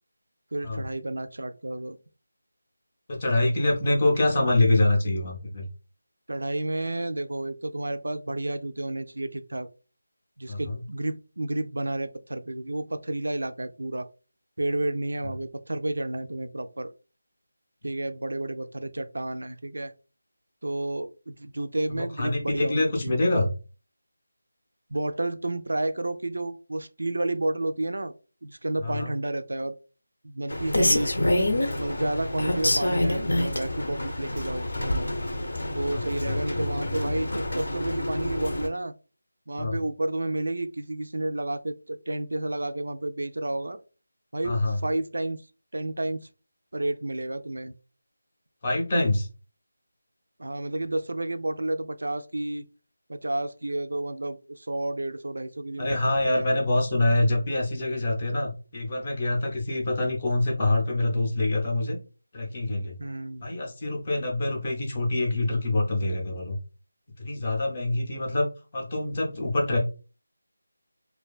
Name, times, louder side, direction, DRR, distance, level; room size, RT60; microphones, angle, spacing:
voice 1, 0.5-2.0 6.3-9.7 10.4-14.1 14.6-16.9 17.8-19.9 20.6-23.2 24.9-28.1 28.4-29.7 30.2-31.1 31.7-35.1 35.7-38.9 39.5-43.8 44.3-45.4 45.7-46.3 46.7-47.8 50.4-52.7 53.1-56.0 56.3-56.5 63.0-63.5 69.7-69.8, right 1 dB, 75° right, 10 dB, 0.3 m, -31 dB
voice 2, 3.1-5.7 10.5-10.8 21.9-23.5 28.8-29.1 35.9-36.7 39.6-39.8 44.4-44.8 48.6-49.3 55.8-62.0 62.3-63.0 63.4-66.6 67.2-69.8, left 2 dB, 25° left, -1 dB, 0.5 m, -25 dB
Rain, 30.5-38.7, left 1 dB, 70° left, 0.6 m, -27 dB
2.5 x 2.2 x 2.3 m, 0.34 s
figure-of-eight pair, 175°, 0 cm